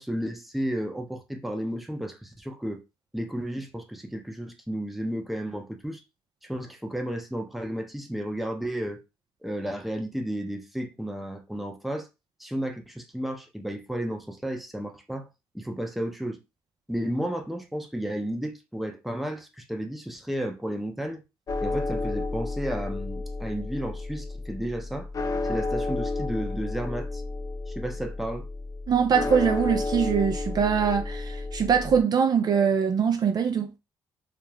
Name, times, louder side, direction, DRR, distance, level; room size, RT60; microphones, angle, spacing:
voice 1, 0.0-2.8 3.1-6.0 6.4-9.0 9.4-12.1 12.4-15.3 15.5-16.4 16.9-21.2 21.6-25.1 25.4-27.2 27.7-28.5, equal, ahead, 0.7 m, -33 dB
sound 1, 21.5-32.0, left 3 dB, 35° left, 0.4 m, -31 dB
voice 2, 28.9-33.7, right 7 dB, 45° right, 0.4 m, -23 dB
2.4 x 2.0 x 3.2 m
supercardioid pair, 60°, 10 cm